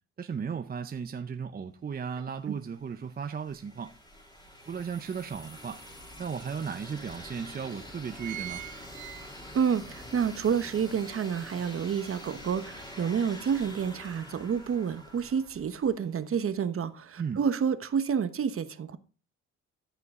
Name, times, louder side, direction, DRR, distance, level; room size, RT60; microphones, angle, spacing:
voice 1, 0.2-3.9 4.7-5.8 6.2-8.6 17.2-17.4, right 6 dB, 30° right, 0.7 m, -35 dB
sound 1, 2.5-16.3, equal, 15° left, 3.4 m, -46 dB
sound 2, 3.9-4.0 4.5-5.7 6.3-6.4 6.7-6.8 7.4-7.6 7.9-9.7 10.1-10.2, right 13 dB, 80° right, 0.8 m, -42 dB
voice 2, 9.5-19.0, right 7 dB, 45° right, 1.1 m, -29 dB
14.0 x 5.7 x 3.7 m
cardioid pair, 90°, 30 cm